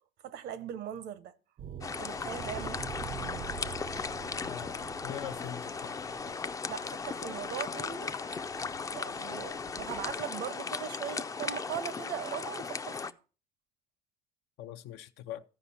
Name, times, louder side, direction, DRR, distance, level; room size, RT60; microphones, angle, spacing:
voice 1, 0.2-1.3 1.9-2.9 6.7-8.2 8.9-13.2, right 10 dB, 80° right, 0.8 m, -40 dB
sound 1, 1.6-10.1, right 9 dB, 55° right, 0.5 m, -46 dB
sound 2, 1.8-13.1, left 5 dB, 20° left, 0.4 m, -37 dB
voice 2, 4.4-6.0 14.6-15.4, left 12 dB, 85° left, 0.6 m, -42 dB
14.0 x 4.9 x 4.2 m
cardioid pair, 110°, 17 cm